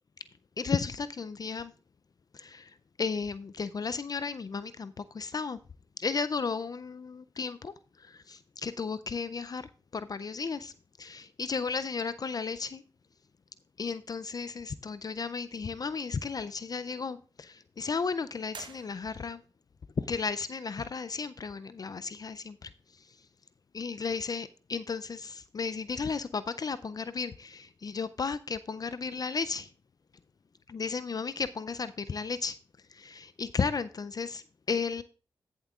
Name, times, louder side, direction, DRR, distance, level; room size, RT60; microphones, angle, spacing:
voice 1, 0.6-1.7 2.3-2.7 3.0-5.6 6.0-7.7 8.3-9.7 9.9-10.7 11.0-12.8 13.8-19.4 20.0-22.7 23.7-29.7 30.7-32.5 33.0-34.4 34.7-35.0, left 5 dB, 45° left, 14 dB, 0.4 m, -34 dB
sound 1, 18.5-19.5, right 5 dB, 60° right, 1.0 m, -48 dB
14.5 x 7.3 x 2.4 m, 0.37 s
supercardioid pair, 45°, 9 cm